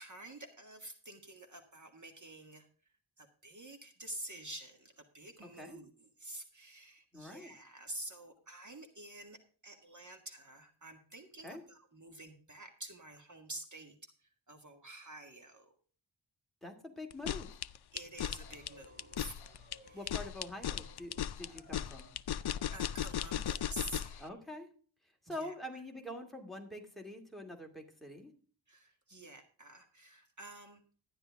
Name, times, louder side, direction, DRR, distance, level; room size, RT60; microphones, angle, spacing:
voice 1, 0.0-9.4 9.6-15.7 17.9-19.4 19.8-20.3 22.7-24.3 25.3-25.5 28.7-30.8, right 1 dB, 40° right, 5 dB, 1.7 m, -49 dB
voice 2, 7.1-7.5 11.4-11.6 16.6-17.5 19.9-22.1 24.2-24.7 25.3-28.3, left 1 dB, ahead, 2 dB, 2.4 m, -45 dB
sound 1, 17.1-24.2, left 10 dB, 60° left, 0.5 m, -37 dB
sound 2, 18.4-22.1 22.4-23.1 23.4-24.1, equal, 20° right, 5.6 m, -61 dB
12.5 x 10.5 x 3.5 m, 0.41 s
wide cardioid pair, 140°, 46 cm